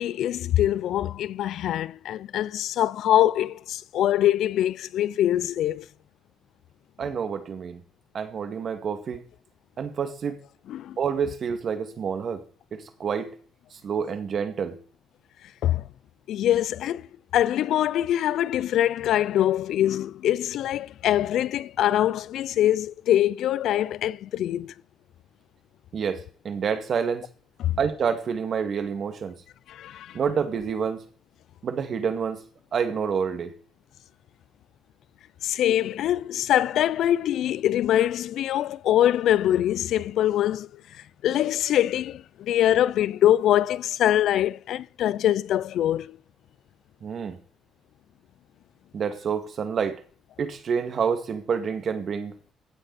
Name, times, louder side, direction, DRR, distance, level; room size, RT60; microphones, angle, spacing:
voice 1, 0.0-5.8 10.7-11.0 15.6-15.8 16.3-17.0 17.3-24.7 27.6-27.8 29.7-30.2 35.4-40.7 41.2-46.2, left 12 dB, 80° left, 0.4 m, -23 dB
voice 2, 7.0-7.8 8.1-9.2 9.8-10.4 11.0-12.4 12.7-13.3 13.7-14.8 25.9-27.3 27.8-29.3 30.1-31.0 31.6-32.4 32.7-33.5 47.0-47.4 48.9-50.0 50.4-52.3, right 6 dB, 55° right, 2.1 m, -28 dB
16.0 x 7.9 x 4.2 m
cardioid pair, 90°, 0 cm